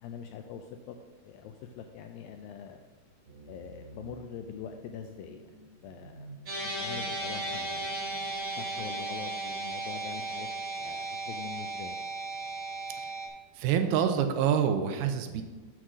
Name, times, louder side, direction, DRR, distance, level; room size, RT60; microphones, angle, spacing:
voice 1, 0.0-1.0 1.2-2.8 3.4-6.3 6.6-8.0 8.6-10.5 10.8-12.1, left 7 dB, 80° left, 6 dB, 2.1 m, -44 dB
sound 1, 3.3-9.9, right 2 dB, 60° right, 3.2 m, -52 dB
sound 2, 6.5-13.3, right 2 dB, 40° right, 1.3 m, -35 dB
voice 2, 13.6-15.4, right 8 dB, 85° right, 7 dB, 2.7 m, -26 dB
7.7 x 6.4 x 6.1 m, 1.3 s
omnidirectional pair, 4.5 m